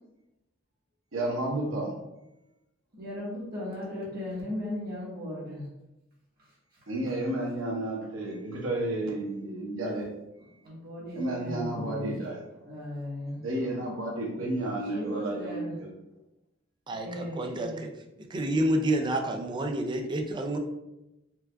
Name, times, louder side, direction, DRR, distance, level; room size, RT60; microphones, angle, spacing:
voice 1, 1.1-1.9 6.9-10.1 11.1-12.4 13.4-15.9, right 1 dB, 90° right, -2 dB, 0.9 m, -31 dB
voice 2, 2.9-5.7 10.6-12.2 12.6-13.4 14.9-15.8 16.9-17.8, left 1 dB, 50° right, -7 dB, 1.2 m, -37 dB
voice 3, 16.9-17.9 18.3-20.6, right 1 dB, 25° right, 3 dB, 0.3 m, -29 dB
4.5 x 2.3 x 2.2 m, 0.95 s
head